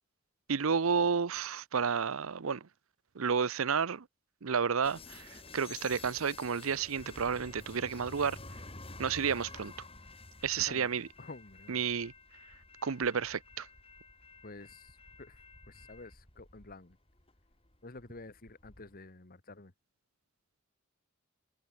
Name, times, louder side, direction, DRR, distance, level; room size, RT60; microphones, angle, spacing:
voice 1, 0.5-2.6 3.2-4.0 4.4-5.3 5.5-8.4 9.0-9.7 10.4-11.1 11.7-12.1 12.8-13.7, right 6 dB, 90° right, 0.7 m, -31 dB
sound 1, 4.8-18.9, left 3 dB, 30° left, 5.2 m, -51 dB
voice 2, 10.6-11.8 14.4-15.4 15.7-17.0 17.8-19.7, left 2 dB, 45° left, 1.7 m, -50 dB
head